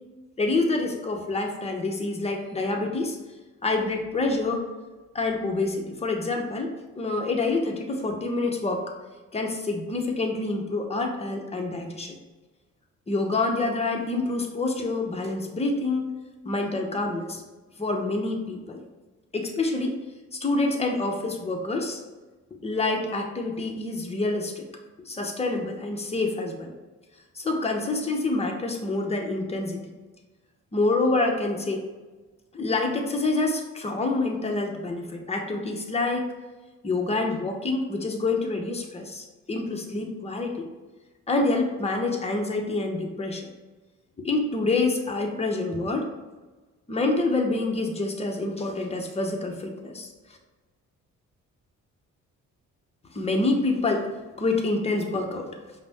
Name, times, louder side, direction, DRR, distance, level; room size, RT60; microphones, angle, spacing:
voice 1, 0.4-3.2 3.6-4.7 5.1-8.8 9.3-12.2 13.1-16.1 16.4-17.4 17.8-18.8 19.3-20.0 20.4-22.0 22.6-24.6 25.1-26.7 27.4-29.9 30.7-31.8 32.5-36.3 36.8-40.7 41.3-43.5 44.2-46.1 46.9-50.1 53.1-54.1 54.4-55.5, left 2 dB, 20° left, 2 dB, 0.7 m, -27 dB
5.2 x 2.1 x 4.1 m, 1.2 s
cardioid pair, 90°, 30 cm